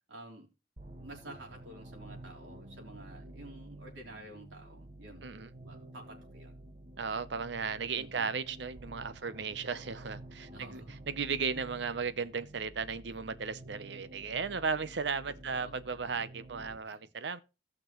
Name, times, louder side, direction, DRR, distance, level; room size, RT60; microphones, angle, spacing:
voice 1, 0.1-0.5 1.0-5.3 5.6-6.5 8.0-8.4 10.5-10.9 11.6-11.7 15.4-15.7 16.8-17.1, right 1 dB, 90° right, 3.5 m, -50 dB
sound 1, 0.8-16.8, right 1 dB, 35° right, 1.5 m, -50 dB
voice 2, 5.2-5.5 7.0-17.4, right 5 dB, 70° right, 0.7 m, -35 dB
16.5 x 6.0 x 3.1 m
head